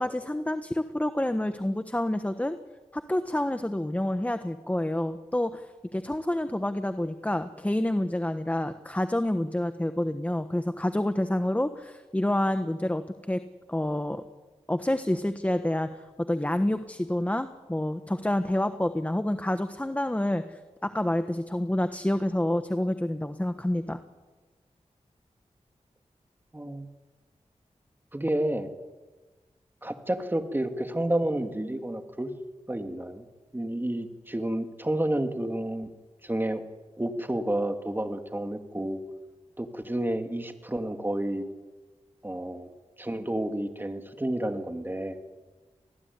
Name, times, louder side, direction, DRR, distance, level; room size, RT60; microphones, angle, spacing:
voice 1, 0.0-2.6 2.9-13.0 13.3-13.4 13.7-14.2 14.7-24.0, left 1 dB, 10° left, 9 dB, 1.2 m, -28 dB
voice 2, 26.5-26.9 28.1-28.7 29.8-32.3 32.7-33.3 33.5-35.9 36.2-36.6 37.0-39.0 39.6-41.4 42.2-42.7 43.0-45.2, right 1 dB, 15° right, 6 dB, 2.6 m, -30 dB
25.5 x 19.5 x 9.8 m, 1.3 s
wide cardioid pair, 85°, 12 cm